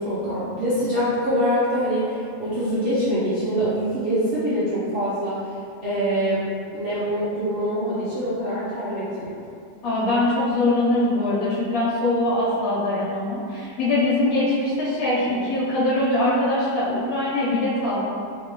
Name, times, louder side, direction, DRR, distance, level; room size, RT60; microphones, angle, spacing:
voice 1, 0.0-6.4 6.7-9.5, equal, 75° right, -11 dB, 0.5 m, -24 dB
voice 2, 9.8-18.1, left 1 dB, 60° left, -9 dB, 1.3 m, -22 dB
3.3 x 2.7 x 3.0 m, 2.3 s
omnidirectional pair, 1.9 m